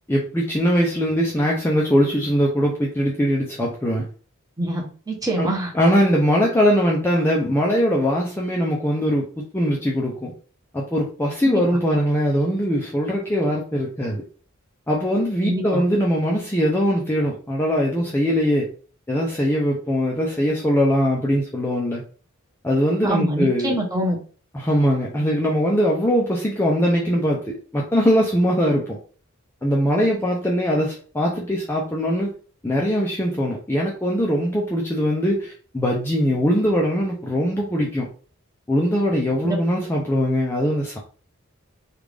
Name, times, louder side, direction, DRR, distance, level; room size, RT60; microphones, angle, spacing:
voice 1, 0.1-4.1 5.4-10.3 10.7-14.2 14.9-18.7 19.1-22.0 22.6-23.8 24.5-29.0 29.6-32.3 32.6-38.1 38.7-41.0, equal, 10° left, 0.5 m, -21 dB
voice 2, 4.6-5.7 11.4-11.6 15.4-15.8 23.0-24.2 25.2-25.3 39.4-39.6, right 1 dB, 15° right, 0.9 m, -25 dB
3.4 x 2.4 x 3.3 m
head